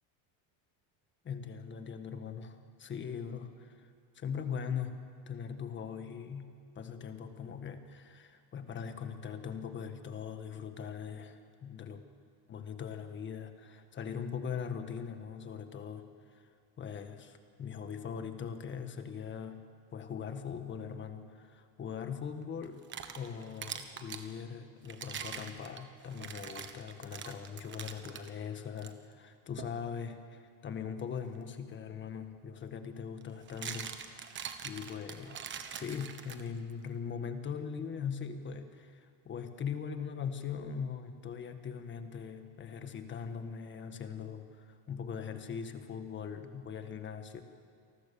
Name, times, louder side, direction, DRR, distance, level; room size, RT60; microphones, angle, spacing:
voice 1, 1.2-5.0 5.3-12.0 12.5-16.1 16.3-16.4 16.8-19.6 19.9-22.8 23.1-34.4 34.6-35.5 35.7-47.4, left 7 dB, 30° left, 8 dB, 1.6 m, -41 dB
sound 1, 22.6-24.3 24.8-28.3 28.8-28.9 29.6-29.8 31.9-32.0 33.2-36.7, right 7 dB, 30° right, 1.4 m, -43 dB
28.5 x 19.5 x 7.0 m, 2.2 s
cardioid pair, 160°, 39 cm